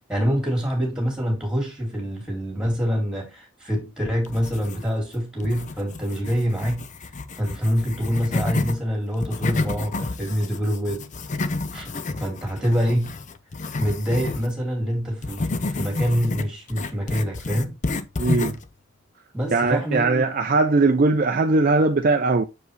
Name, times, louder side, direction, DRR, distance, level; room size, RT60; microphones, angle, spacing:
voice 1, 0.1-7.1 7.4-11.1 11.4-13.2 13.8-17.8 19.3-20.2, equal, 5° right, 2.3 m, -26 dB
sound 1, 4.2-5.1 5.4-8.8 9.1-14.5 15.2-18.7, left 3 dB, 35° left, 0.5 m, -30 dB
voice 2, 18.2-18.6 19.5-22.4, right 3 dB, 45° right, 0.5 m, -20 dB
6.6 x 4.8 x 3.1 m
head